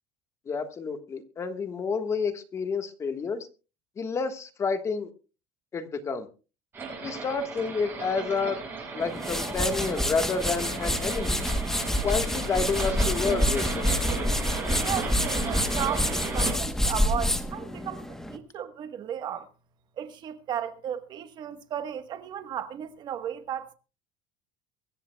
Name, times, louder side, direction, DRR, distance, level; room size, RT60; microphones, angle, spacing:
voice 1, 0.5-3.5 4.0-5.1 5.7-6.3 7.0-8.6 8.9-11.4 12.0-13.9, left 4 dB, 20° left, 1.4 m, -29 dB
sound 1, 6.7-16.5, right 4 dB, 15° right, 6.5 m, -35 dB
sound 2, 9.0-18.4, left 1 dB, 5° left, 1.0 m, -28 dB
voice 2, 14.7-19.5 20.0-23.7, right 9 dB, 35° right, 1.2 m, -35 dB
24.0 x 14.5 x 2.3 m
cardioid pair, 175°, 13 cm